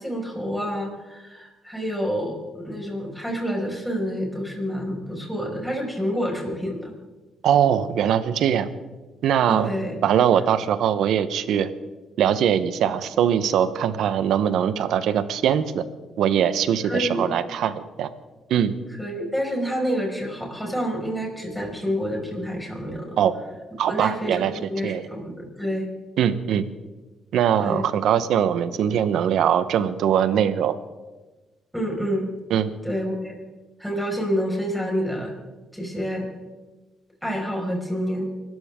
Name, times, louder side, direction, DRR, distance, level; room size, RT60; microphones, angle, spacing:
voice 1, 0.0-6.9 9.5-10.0 16.8-17.3 19.0-23.2 23.9-25.9 27.6-27.9 31.7-32.3 32.8-33.4 33.8-35.3 35.7-36.3 37.2-38.3, equal, ahead, -1 dB, 5.5 m, -28 dB
voice 2, 7.4-8.7 9.2-9.8 10.0-11.7 12.2-15.8 16.2-18.1 18.5-18.7 23.2-23.3 23.8-24.5 24.8-25.0 26.2-26.6 27.3-30.7 32.5-32.7, right 9 dB, 75° right, 13 dB, 1.0 m, -21 dB
25.0 x 14.0 x 3.7 m, 1.2 s
cardioid pair, 90°, 0 cm